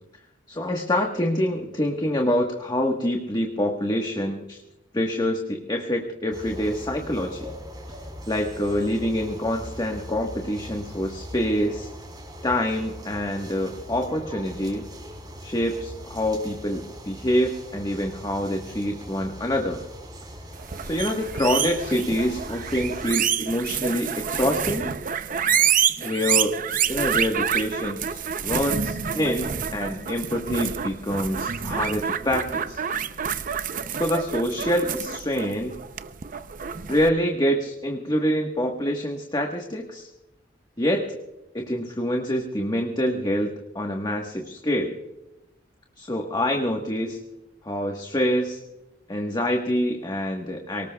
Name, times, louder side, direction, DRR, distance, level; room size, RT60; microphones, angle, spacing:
voice 1, 0.5-4.6 4.9-7.5 8.3-11.9 12.4-14.9 15.4-19.8 20.8-24.9 26.0-26.6 26.9-32.8 33.9-35.8 36.9-40.1 40.8-41.2 41.5-45.0 46.0-47.2 47.6-48.6 49.1-50.9, equal, 25° left, 2 dB, 1.4 m, -26 dB
sound 1, 6.3-23.1, equal, 20° right, 3.5 m, -41 dB
sound 2, 20.6-37.1, right 8 dB, 45° right, 0.6 m, -28 dB
23.5 x 19.0 x 2.3 m, 0.96 s
head